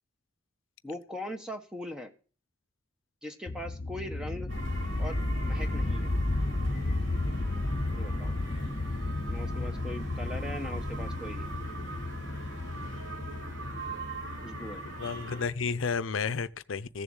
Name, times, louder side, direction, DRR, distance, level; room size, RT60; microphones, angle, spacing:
voice 1, 0.8-2.1 3.2-4.5 5.0-6.1 7.9-8.3 9.3-11.5 14.4-14.8, left 1 dB, 5° right, 1.2 m, -40 dB
sound 1, 3.5-15.8, left 2 dB, 40° left, 0.8 m, -33 dB
sound 2, 4.5-15.4, right 2 dB, 80° right, 4.8 m, -41 dB
voice 2, 15.0-17.0, left 5 dB, 90° left, 0.6 m, -32 dB
15.0 x 7.1 x 7.1 m
head